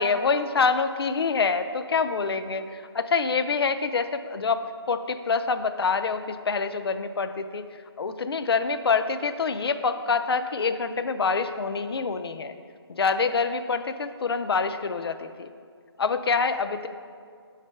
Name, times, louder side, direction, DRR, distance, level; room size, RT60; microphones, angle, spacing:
voice 1, 0.0-7.6 8.0-12.6 12.9-15.5 16.0-16.9, left 4 dB, 65° left, 10 dB, 0.4 m, -26 dB
7.2 x 3.3 x 5.4 m, 2.2 s
hypercardioid pair, 180°, 14 cm